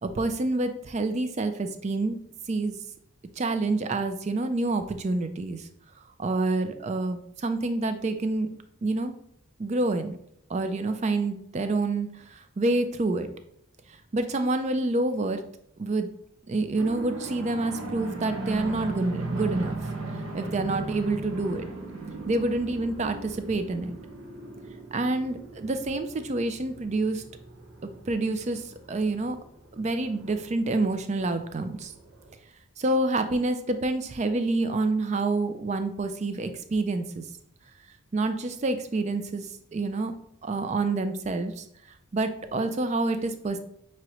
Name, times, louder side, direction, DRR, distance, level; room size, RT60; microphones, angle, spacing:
voice 1, 0.0-2.2 2.5-2.8 3.4-5.7 6.2-8.5 8.8-9.1 9.6-10.2 10.5-13.3 14.1-15.4 15.8-16.1 16.5-19.8 20.3-21.7 22.3-24.0 24.9-27.2 27.8-29.4 29.8-31.9 32.8-37.2 38.1-40.2 40.4-41.6 42.1-43.6, right 2 dB, 30° right, 9 dB, 0.3 m, -27 dB
sound 1, 16.7-32.3, right 2 dB, 80° right, 0.9 m, -38 dB
6.1 x 2.9 x 2.9 m, 0.72 s
head